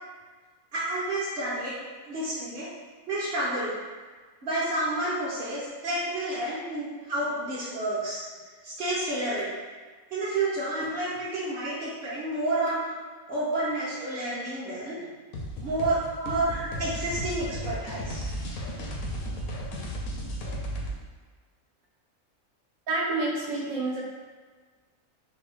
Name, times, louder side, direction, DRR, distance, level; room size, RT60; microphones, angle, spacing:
voice 1, 0.7-1.7 2.1-2.7 3.1-3.7 4.4-8.2 8.6-9.6 10.1-13.0 13.3-15.0 15.6-16.0 16.2-18.3, right 1 dB, 50° right, -11 dB, 1.0 m, -30 dB
sound 1, 15.3-20.9, equal, 85° left, 1.1 m, -34 dB
voice 2, 22.9-24.0, right 2 dB, 80° right, -4 dB, 1.2 m, -29 dB
3.7 x 2.3 x 3.4 m, 1.5 s
omnidirectional pair, 1.5 m